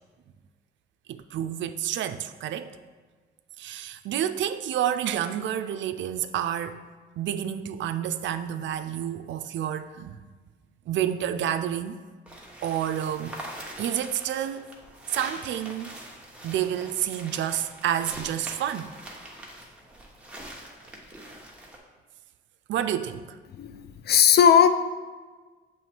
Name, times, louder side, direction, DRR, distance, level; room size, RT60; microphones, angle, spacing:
voice 1, 1.1-2.7 3.6-6.8 7.2-10.2 10.9-12.0 12.6-13.4 13.8-14.7 15.1-16.0 16.4-18.9 22.7-23.4, right 10 dB, 70° right, 10 dB, 0.4 m, -29 dB
sound 1, 12.3-21.8, right 1 dB, 5° right, 1.1 m, -43 dB
voice 2, 23.5-24.7, left 8 dB, 55° left, 10 dB, 0.5 m, -18 dB
7.0 x 3.1 x 4.4 m, 1.4 s
cardioid pair, 90°, 20 cm